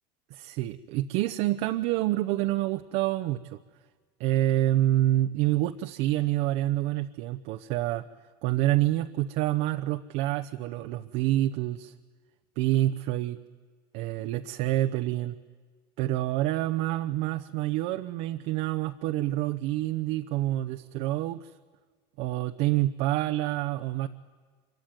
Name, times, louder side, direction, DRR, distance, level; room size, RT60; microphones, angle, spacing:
voice 1, 0.3-3.6 4.2-8.0 8.4-11.9 12.6-13.4 13.9-15.4 16.0-21.5 22.2-24.1, right 15 dB, 65° right, 6 dB, 1.0 m, -27 dB
26.0 x 24.0 x 9.3 m, 1.5 s
supercardioid pair, 130°, 13 cm